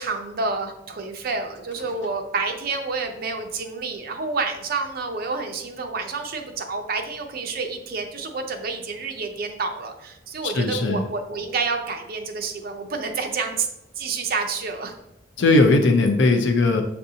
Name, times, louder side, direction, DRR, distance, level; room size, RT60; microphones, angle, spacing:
voice 1, 0.0-13.7 14.0-14.9, right 4 dB, 50° right, 5 dB, 0.6 m, -29 dB
voice 2, 10.4-11.1 15.4-16.8, left 2 dB, 70° left, 5 dB, 0.5 m, -18 dB
6.7 x 2.6 x 2.7 m, 0.86 s
head